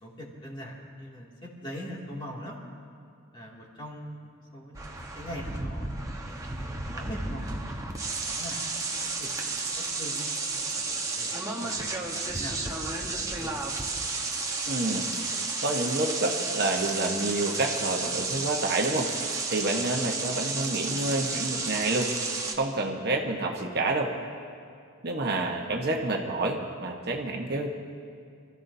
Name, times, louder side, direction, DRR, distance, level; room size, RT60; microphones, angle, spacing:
voice 1, 0.0-2.6 3.3-5.9 6.3-10.2 10.7-13.6, equal, 25° left, -4 dB, 2.4 m, -42 dB
sound 1, 4.7-22.5, right 3 dB, 15° right, 1.1 m, -32 dB
voice 2, 14.7-15.1 15.6-19.1 19.5-22.1 22.6-24.1 25.0-27.7, right 2 dB, 50° right, 1 dB, 1.2 m, -28 dB
27.0 x 13.5 x 2.7 m, 2.3 s
head